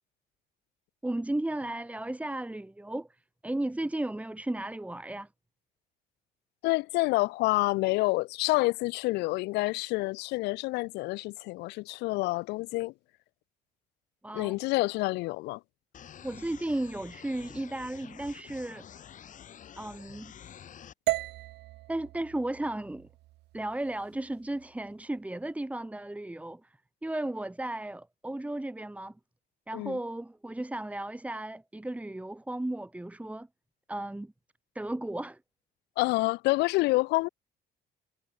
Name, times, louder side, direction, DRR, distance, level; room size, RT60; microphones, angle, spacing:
voice 1, 1.0-3.1 3.4-5.3 14.2-14.6 16.2-18.8 19.8-20.3 21.9-23.1 23.5-29.1 29.7-33.5 33.9-34.3 34.7-35.4, right 1 dB, 10° right, 3.1 m, -34 dB
voice 2, 6.6-12.9 14.3-15.6 29.7-30.0 36.0-37.3, left 22 dB, 85° left, 0.4 m, -28 dB
sound 1, 15.9-20.9, left 9 dB, 50° left, 3.5 m, -49 dB
sound 2, 21.1-25.2, right 18 dB, 85° right, 3.4 m, -37 dB
cardioid pair, 110°, 17 cm